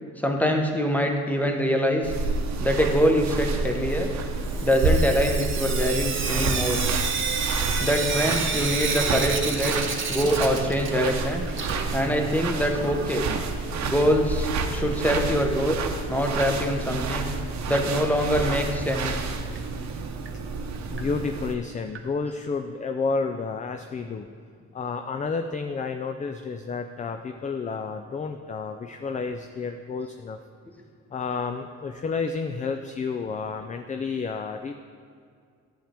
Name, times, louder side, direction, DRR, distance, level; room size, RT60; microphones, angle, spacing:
voice 1, 0.2-2.1 2.6-4.1 4.6-6.8 7.8-9.7 10.1-11.4 11.9-13.2 13.8-15.7 16.1-17.3 17.7-19.2, equal, 5° left, 3 dB, 1.1 m, -24 dB
sound 1, 2.0-21.6, right 4 dB, 65° right, 0.8 m, -29 dB
Sink (filling or washing) / Drip, 4.4-11.2 11.5-13.4 14.6-14.7 15.0-15.1 15.3-15.4 18.3-18.4 18.9-19.0 19.6-19.7 20.3-20.4 21.0-21.1 21.9-22.0, right 5 dB, 40° right, 0.9 m, -30 dB
voice 2, 20.9-24.3 24.7-30.4 31.1-34.7, left 4 dB, 25° left, 6 dB, 0.4 m, -30 dB
10.0 x 7.4 x 3.5 m, 2.2 s
cardioid pair, 90°, 30 cm